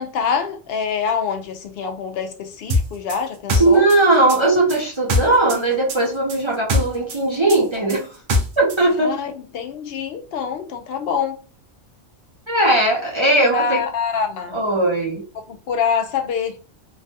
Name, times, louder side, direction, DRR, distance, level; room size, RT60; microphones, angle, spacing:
voice 1, 0.0-3.8 9.0-11.4 13.4-14.6 15.5-16.6, left 6 dB, 60° left, 0.7 m, -25 dB
sound 1, 2.7-5.6 5.9-8.8, left 1 dB, 75° right, 1.0 m, -22 dB
voice 2, 3.6-8.1 8.6-9.1 12.5-13.8 14.5-15.2, right 2 dB, 35° right, 0.5 m, -18 dB
3.2 x 2.2 x 2.6 m
omnidirectional pair, 1.3 m